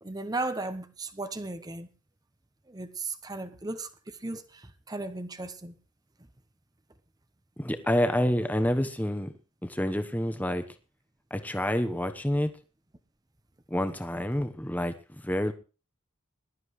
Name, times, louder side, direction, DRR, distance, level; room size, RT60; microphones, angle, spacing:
voice 1, 0.0-1.9 2.7-5.7, right 2 dB, 20° right, 0.9 m, -36 dB
voice 2, 7.6-9.3 9.7-10.6 11.3-12.5 13.7-15.5, equal, 10° left, 1.0 m, -28 dB
21.0 x 12.0 x 3.2 m
head